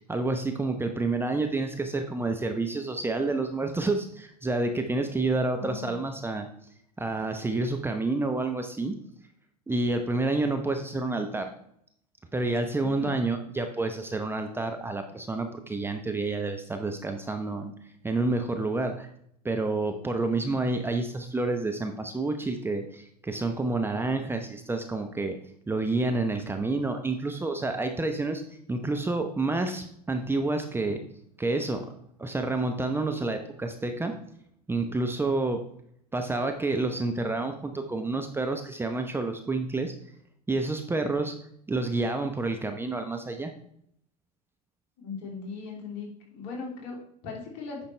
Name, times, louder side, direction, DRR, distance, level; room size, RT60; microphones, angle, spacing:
voice 1, 0.0-6.5 7.0-9.0 9.7-11.5 12.3-17.7 18.0-19.1 19.4-25.4 25.7-28.4 28.7-31.0 31.4-31.9 32.2-34.1 34.7-35.6 36.1-39.9 40.5-41.3 41.7-43.5, right 2 dB, 10° right, 5 dB, 0.8 m, -29 dB
voice 2, 5.6-6.0 12.8-13.2 20.5-20.6 45.0-46.1 46.3-47.8, left 4 dB, 50° left, -1 dB, 3.0 m, -38 dB
9.3 x 5.8 x 3.3 m, 0.69 s
hypercardioid pair, 80°, 21 cm